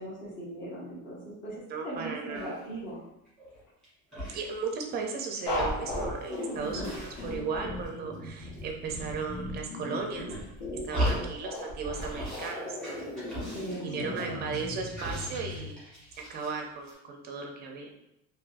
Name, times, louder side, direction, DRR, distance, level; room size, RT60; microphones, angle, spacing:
voice 1, 0.0-3.0 6.6-7.0 10.9-11.3 13.4-14.3, equal, 40° left, -11 dB, 1.3 m, -40 dB
voice 2, 1.7-2.6 4.3-10.3 10.7-13.0 13.8-15.8 16.3-17.9, right 5 dB, 30° right, 2 dB, 0.5 m, -36 dB
sound 1, 2.3-2.8 3.3-3.9 4.1-5.1 5.4-7.6 7.8-8.6 8.9-9.6 10.1-11.6 11.9-12.5 12.8-16.6 16.8-16.9, equal, ahead, 1.4 m, -38 dB
sound 2, 5.5-15.7, left 1 dB, 75° left, 1.3 m, -37 dB
3.7 x 2.6 x 2.5 m, 0.84 s
cardioid pair, 170°, 31 cm